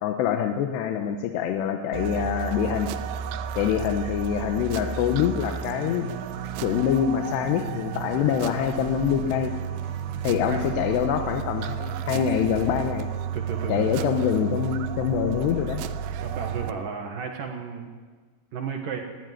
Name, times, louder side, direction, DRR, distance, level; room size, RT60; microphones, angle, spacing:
voice 1, 0.0-2.9 3.6-6.1 6.6-9.5 10.2-13.1 13.7-15.8, left 9 dB, 75° left, 5 dB, 2.7 m, -25 dB
sound 1, 1.9-16.7, right 9 dB, 85° right, 3.3 m, -32 dB
sound 2, 4.9-12.3, left 2 dB, 40° left, 5.2 m, -44 dB
voice 2, 13.3-14.2 16.2-17.9 18.5-19.0, right 6 dB, 65° right, 3 dB, 2.3 m, -33 dB
19.0 x 15.5 x 9.4 m, 1.5 s
omnidirectional pair, 5.7 m